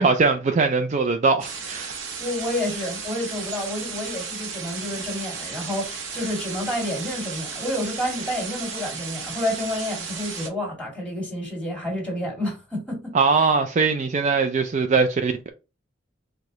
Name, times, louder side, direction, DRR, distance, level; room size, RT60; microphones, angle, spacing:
voice 1, 0.0-1.9 13.1-15.5, right 4 dB, 35° right, 0.4 m, -21 dB
sound 1, 1.4-10.5, right 5 dB, 70° right, 0.8 m, -34 dB
voice 2, 2.2-13.1, left 1 dB, 5° left, 1.8 m, -29 dB
4.7 x 2.2 x 3.8 m
head